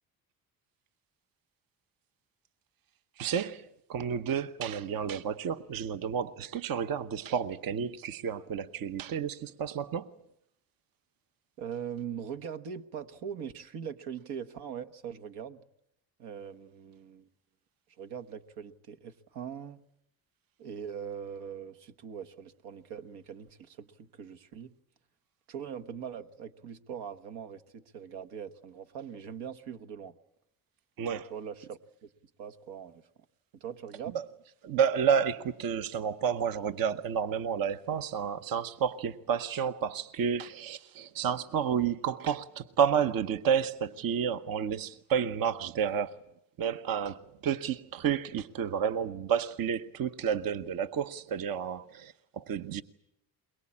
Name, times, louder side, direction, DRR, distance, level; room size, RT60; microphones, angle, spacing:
voice 1, 3.2-3.6 3.9-10.1 31.0-31.3 34.6-46.2 46.6-52.8, right 7 dB, 60° right, 1.0 m, -30 dB
voice 2, 11.6-15.6 16.2-17.3 18.0-19.8 20.6-24.7 25.5-30.1 31.1-32.1 32.4-33.0 33.6-34.2, right 8 dB, 85° right, 1.3 m, -41 dB
22.5 x 22.5 x 8.6 m
cardioid pair, 90°, 38 cm